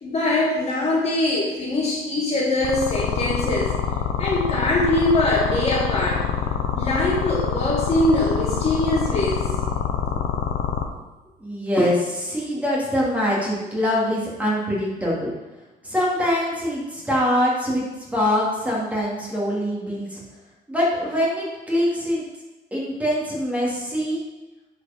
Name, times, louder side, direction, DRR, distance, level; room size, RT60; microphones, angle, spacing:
voice 1, 0.0-3.7 4.2-6.2 6.7-9.5, left 1 dB, 40° left, -4 dB, 3.1 m, -22 dB
sound 1, 2.6-10.8, left 8 dB, 70° left, 1.0 m, -25 dB
voice 2, 11.4-15.3 15.8-17.8 18.1-20.2 20.7-22.2 22.7-24.2, equal, 10° right, -6 dB, 3.2 m, -23 dB
10.5 x 5.3 x 5.4 m, 1.1 s
cardioid pair, 110°, 17 cm